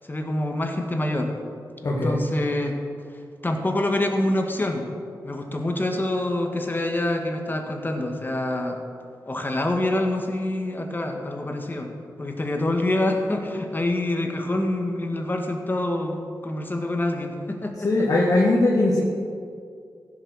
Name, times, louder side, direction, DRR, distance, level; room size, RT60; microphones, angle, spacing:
voice 1, 0.1-1.3 1.8-2.8 3.4-4.9 5.2-8.8 9.3-11.9 12.2-18.1, left 1 dB, 25° left, 3 dB, 1.8 m, -26 dB
voice 2, 1.8-2.2 17.8-19.0, left 2 dB, 55° left, -4 dB, 1.8 m, -20 dB
15.5 x 6.9 x 6.4 m, 2.3 s
cardioid pair, 60°, 7 cm